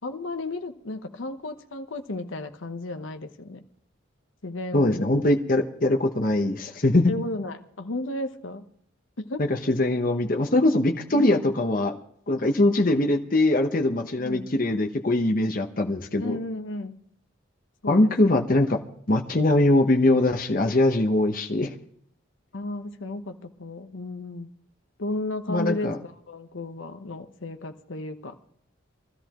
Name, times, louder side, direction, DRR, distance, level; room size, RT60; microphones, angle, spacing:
voice 1, 0.0-3.6 4.4-5.3 7.0-8.7 9.2-9.4 11.1-11.5 14.0-14.5 16.2-17.0 17.8-18.1 22.5-24.5 25.0-28.4, left 2 dB, 85° left, 7 dB, 1.0 m, -34 dB
voice 2, 4.7-7.1 9.4-11.9 12.3-16.4 17.9-18.8 19.1-21.7 25.5-26.0, left 1 dB, 45° left, 4 dB, 1.0 m, -22 dB
23.0 x 13.5 x 3.0 m, 0.67 s
head